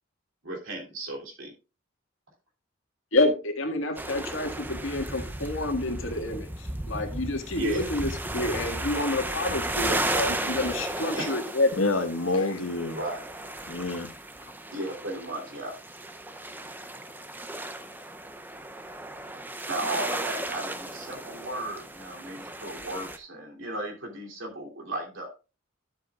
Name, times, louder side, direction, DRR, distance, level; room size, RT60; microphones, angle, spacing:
voice 1, 0.4-1.5 7.6-7.9 11.1-11.3 12.9-13.2 14.7-15.7 19.7-25.3, right 1 dB, 70° right, 0 dB, 3.0 m, -35 dB
voice 2, 3.1-11.7, left 2 dB, 70° left, 4 dB, 1.9 m, -28 dB
sound 1, 4.0-23.2, right 1 dB, 10° right, 0.6 m, -35 dB
voice 3, 11.7-13.0 13.7-14.1, left 2 dB, 85° left, 7 dB, 1.3 m, -27 dB
12.0 x 7.6 x 2.4 m, 0.31 s
head